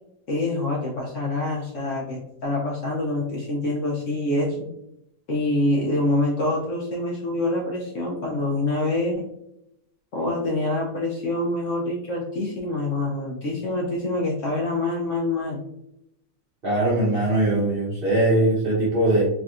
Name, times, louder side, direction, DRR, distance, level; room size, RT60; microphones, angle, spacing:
voice 1, 0.3-4.7 5.3-9.2 10.1-15.6, left 2 dB, 65° left, -2 dB, 0.8 m, -26 dB
voice 2, 16.6-19.3, right 1 dB, 45° right, -6 dB, 0.8 m, -21 dB
3.4 x 2.6 x 2.3 m, 0.81 s
omnidirectional pair, 1.8 m